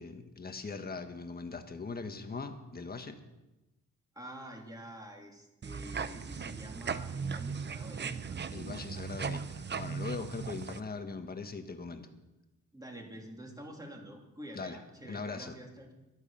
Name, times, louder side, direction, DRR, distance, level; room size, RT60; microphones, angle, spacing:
voice 1, 0.0-3.2 8.5-12.1 14.5-15.5, left 4 dB, 30° left, 6 dB, 1.5 m, -40 dB
voice 2, 4.1-8.4 12.7-15.9, right 1 dB, 10° right, 0 dB, 2.9 m, -47 dB
sound 1, 5.6-10.8, right 6 dB, 35° right, 0.7 m, -38 dB
13.5 x 11.5 x 5.7 m, 1.0 s
cardioid pair, 110°, 30 cm